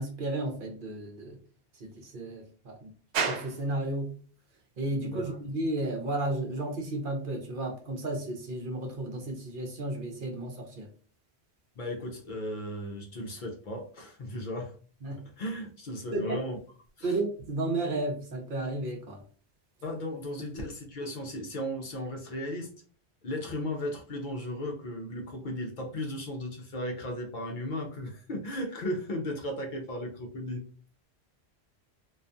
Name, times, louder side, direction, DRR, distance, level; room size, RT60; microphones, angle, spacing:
voice 1, 0.0-1.4 1.8-2.9 3.3-4.2 4.8-10.9 15.0-15.2 16.1-16.4 17.0-19.2, right 2 dB, 60° right, 2 dB, 0.7 m, -33 dB
sound 1, 3.1-20.6, right 5 dB, 85° right, 0.9 m, -45 dB
voice 2, 5.0-5.4 11.8-14.7 15.4-16.6 17.0-17.2 19.8-22.7 23.2-30.7, left 1 dB, 55° left, 1 dB, 0.6 m, -36 dB
2.3 x 2.2 x 2.5 m, 0.42 s
omnidirectional pair, 1.1 m